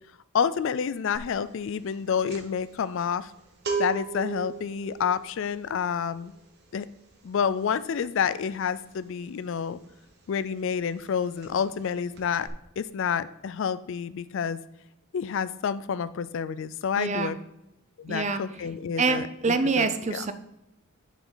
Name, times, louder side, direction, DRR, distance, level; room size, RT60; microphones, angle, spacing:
voice 1, 0.3-3.3 3.8-6.3 6.7-6.9 7.2-9.8 10.3-12.5 12.8-14.6 15.1-17.4 18.0-19.3 19.8-20.3, left 7 dB, 60° left, 15 dB, 0.3 m, -29 dB
sound 1, 1.2-1.4 1.7-10.3 10.5-10.8 11.0-11.9 12.1-12.5, right 5 dB, 50° right, 1.2 m, -37 dB
voice 2, 16.9-17.3 18.1-18.4 19.0-20.3, right 4 dB, 30° right, 11 dB, 0.5 m, -26 dB
9.8 x 5.0 x 4.0 m, 0.88 s
head